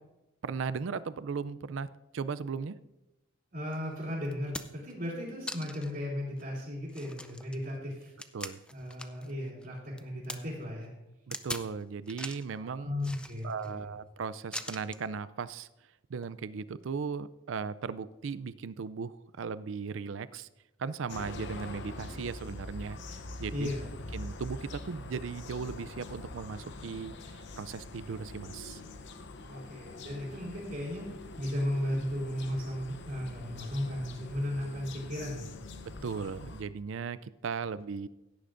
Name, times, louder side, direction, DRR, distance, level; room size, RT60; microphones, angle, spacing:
voice 1, 0.4-1.9 2.1-2.8 8.3-8.6 11.3-12.9 13.4-15.7 16.1-20.5 20.8-23.7 24.1-27.1 27.5-28.8 36.0-38.1, right 5 dB, 70° right, 16 dB, 0.4 m, -37 dB
voice 2, 3.5-8.1 8.7-10.9 12.5-13.9 23.5-23.9 29.5-31.1 31.4-35.5, left 1 dB, 50° right, -8 dB, 3.4 m, -35 dB
sound 1, 3.7-3.8 4.2-4.9 5.5-5.9 6.4-6.5 6.9-9.3 9.6-10.4 11.3-11.7 12.1-12.5 13.0-13.7 14.5-15.1 16.1-16.3, left 1 dB, 5° left, 0.4 m, -41 dB
sound 2, 21.1-36.6, left 2 dB, 60° left, 0.8 m, -44 dB
16.5 x 10.0 x 2.6 m, 0.98 s
head